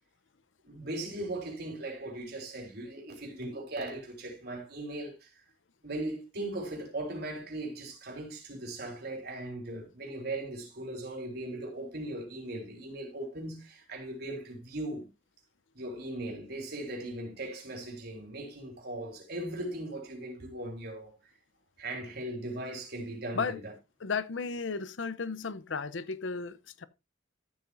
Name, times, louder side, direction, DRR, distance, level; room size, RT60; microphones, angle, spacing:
voice 1, 0.6-5.4 5.8-15.1 15.7-21.1 21.8-23.7, right 1 dB, 60° right, 4.0 m, -38 dB
voice 2, 24.0-26.8, left 5 dB, 90° left, 0.7 m, -34 dB
13.5 x 8.1 x 2.6 m
head